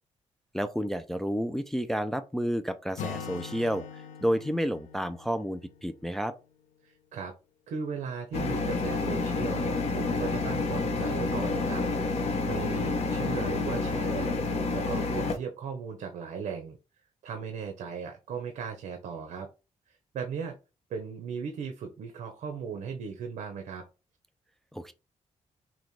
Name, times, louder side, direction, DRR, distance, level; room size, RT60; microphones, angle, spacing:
voice 1, 0.5-3.8 4.2-6.3 24.7-24.9, equal, 5° left, 0.3 m, -30 dB
Acoustic guitar, 3.0-6.7, left 7 dB, 75° left, 0.7 m, -42 dB
voice 2, 6.8-7.3 7.7-11.8 12.1-14.4 14.7-16.8 17.2-19.5 19.9-20.6 20.9-23.8, right 6 dB, 75° right, 0.9 m, -37 dB
Roomtone Garage, 8.3-15.4, left 3 dB, 55° left, 0.9 m, -29 dB
6.0 x 2.2 x 3.1 m
wide cardioid pair, 160°, 13 cm